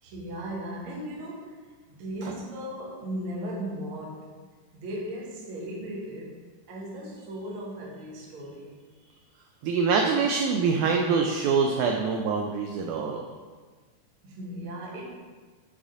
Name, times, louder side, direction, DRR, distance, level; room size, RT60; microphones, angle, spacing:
voice 1, 0.0-4.4 4.7-8.8 14.2-15.1, right 1 dB, 65° right, -3 dB, 1.3 m, -37 dB
voice 2, 9.6-13.2, right 5 dB, 85° right, 2 dB, 1.7 m, -25 dB
5.4 x 4.8 x 3.7 m, 1.4 s
omnidirectional pair, 3.9 m